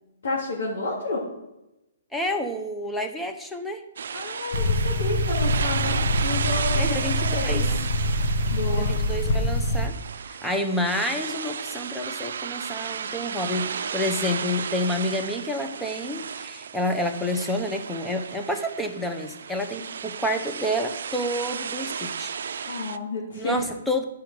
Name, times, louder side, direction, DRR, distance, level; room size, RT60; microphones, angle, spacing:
voice 1, 0.2-1.2 4.1-7.8 8.5-8.9 19.8-19.9 22.6-23.7, left 2 dB, 80° left, -6 dB, 2.7 m, -31 dB
voice 2, 2.1-3.8 6.7-7.6 8.7-10.0 10.4-22.3 22.6-22.8 23.4-24.0, left 1 dB, 5° left, 4 dB, 0.8 m, -29 dB
sound 1, 4.0-23.0, right 7 dB, 70° right, 0.4 m, -34 dB
sound 2, 4.5-9.9, left 1 dB, 40° left, 1.3 m, -25 dB
11.0 x 4.8 x 4.9 m, 0.93 s
hypercardioid pair, 150°, 0 cm